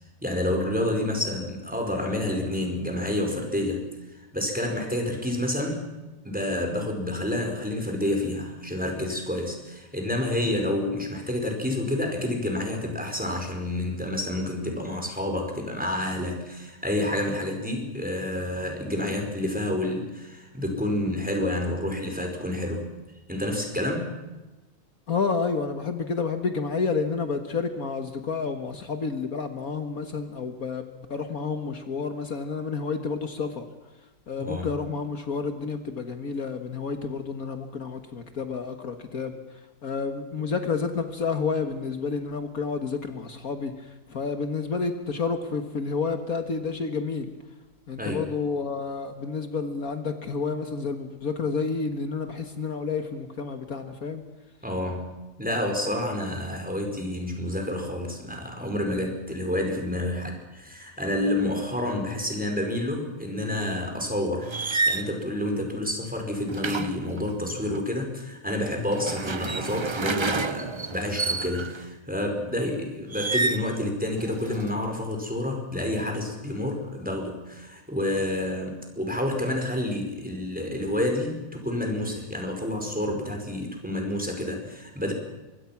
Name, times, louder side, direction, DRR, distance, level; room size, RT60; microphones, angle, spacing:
voice 1, 0.2-3.8 4.3-5.8 6.2-22.9 23.3-24.1 34.4-34.7 48.0-48.3 54.6-64.5 64.9-85.1, left 1 dB, 5° right, 3 dB, 5.0 m, -29 dB
voice 2, 25.1-33.7 34.3-39.4 39.8-47.3 47.9-54.2, left 5 dB, 60° left, 7 dB, 1.9 m, -30 dB
sound 1, 64.4-65.1 66.5-67.8 68.8-71.8 73.1-73.7 74.2-74.7, right 3 dB, 45° right, 0.3 m, -29 dB
25.0 x 22.5 x 6.0 m, 1.1 s
omnidirectional pair, 1.7 m